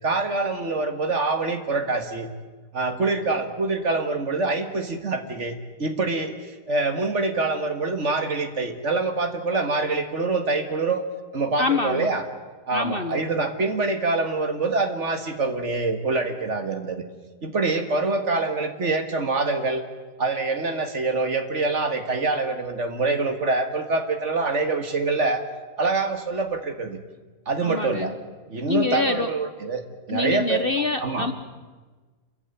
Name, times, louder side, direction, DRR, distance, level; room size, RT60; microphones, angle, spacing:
voice 1, 0.0-2.3 2.7-11.0 11.3-12.3 12.7-17.0 17.4-19.8 20.2-25.4 25.8-27.0 27.5-28.1 28.5-29.8 30.1-30.6 31.0-31.3, right 3 dB, 45° right, 7 dB, 2.1 m, -25 dB
voice 2, 11.6-12.1 12.7-13.2 27.6-28.1 28.7-29.3 30.1-31.3, left 4 dB, 40° left, 9 dB, 1.0 m, -25 dB
29.5 x 14.5 x 9.2 m, 1.3 s
omnidirectional pair, 1.7 m